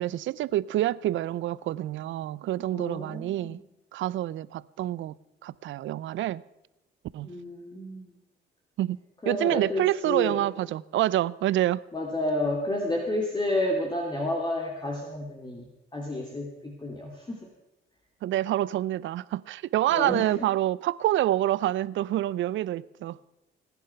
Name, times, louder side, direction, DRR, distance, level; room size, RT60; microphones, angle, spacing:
voice 1, 0.0-3.6 3.9-5.1 5.4-6.4 7.1-7.3 8.8-9.0 9.3-11.8 18.2-23.2, right 14 dB, 75° right, 0.5 m, -27 dB
voice 2, 2.7-3.6 7.2-8.1 9.2-10.4 11.9-15.7 15.9-17.4 19.9-20.4, left 1 dB, 20° left, 2.5 m, -30 dB
19.0 x 10.0 x 5.8 m
cardioid pair, 90°, 20 cm